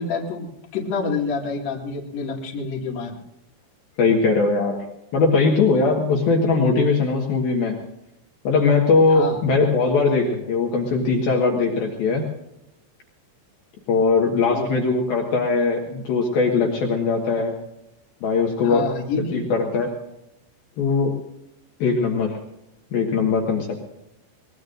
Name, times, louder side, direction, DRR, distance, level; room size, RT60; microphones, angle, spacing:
voice 1, 0.0-3.2 9.1-9.4 14.5-14.7 18.6-19.5, left 4 dB, 45° left, -1 dB, 2.9 m, -28 dB
voice 2, 4.0-4.8 5.1-7.8 8.4-12.2 13.9-17.5 18.2-18.9 19.3-19.9 20.8-21.2 21.8-22.4 22.9-23.9, left 4 dB, 65° left, 0 dB, 3.2 m, -20 dB
23.0 x 20.0 x 2.6 m, 0.84 s
omnidirectional pair, 5.2 m